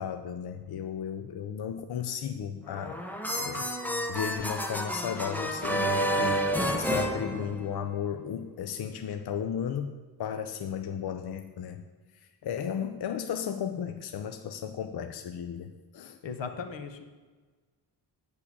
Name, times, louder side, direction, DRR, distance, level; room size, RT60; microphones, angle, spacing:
voice 1, 0.0-3.0 3.4-6.4 6.7-9.9 10.2-11.8 12.4-16.2, left 8 dB, 60° left, 8 dB, 0.6 m, -34 dB
sound 1, 2.7-8.0, equal, 5° left, 0.9 m, -30 dB
voice 2, 16.2-17.0, left 5 dB, 85° left, 8 dB, 1.2 m, -37 dB
8.5 x 6.8 x 8.4 m, 1.4 s
wide cardioid pair, 170°, 43 cm